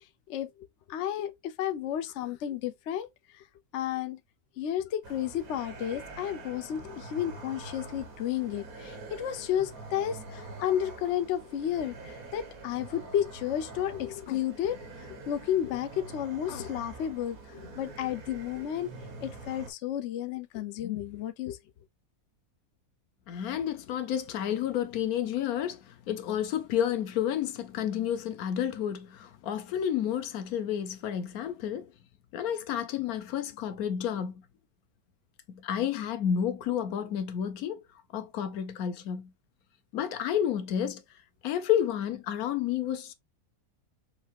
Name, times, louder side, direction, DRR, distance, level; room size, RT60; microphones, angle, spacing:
voice 1, 0.9-3.1 3.3-3.4 3.7-4.2 4.6-18.9 19.2-21.6, left 10 dB, 65° left, 0.8 m, -32 dB
sound 1, 5.0-19.7, right 3 dB, 75° right, 1.7 m, -45 dB
voice 2, 23.3-31.9 32.3-34.4 35.5-37.8 38.1-39.3 39.9-41.0 41.4-43.1, left 9 dB, 85° left, 1.2 m, -30 dB
5.7 x 2.7 x 2.9 m
omnidirectional pair, 1.5 m